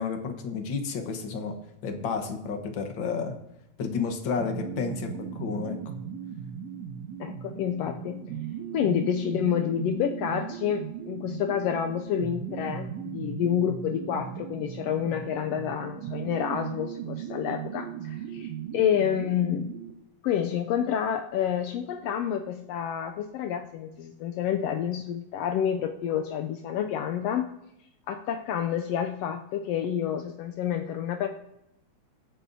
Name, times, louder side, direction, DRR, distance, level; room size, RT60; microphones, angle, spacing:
voice 1, 0.0-1.6 1.8-3.3 3.8-5.9, left 5 dB, 50° left, 5 dB, 1.7 m, -31 dB
sound 1, 4.4-19.9, right 8 dB, 70° right, 1.8 m, -37 dB
voice 2, 7.2-8.2 8.7-19.7 20.2-27.4 28.1-31.3, left 9 dB, 80° left, 5 dB, 1.4 m, -29 dB
23.5 x 9.3 x 2.8 m, 0.84 s
omnidirectional pair, 3.4 m